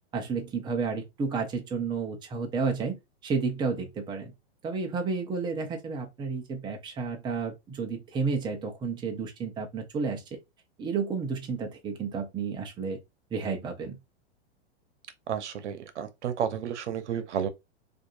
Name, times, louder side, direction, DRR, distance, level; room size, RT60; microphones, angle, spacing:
voice 1, 0.1-3.0 3.2-4.3 4.6-10.2 10.8-13.0 13.3-14.0, right 5 dB, 15° right, 0.7 m, -31 dB
voice 2, 15.3-17.5, right 8 dB, 90° right, 0.8 m, -31 dB
4.6 x 2.6 x 2.4 m
hypercardioid pair, 145°, 33 cm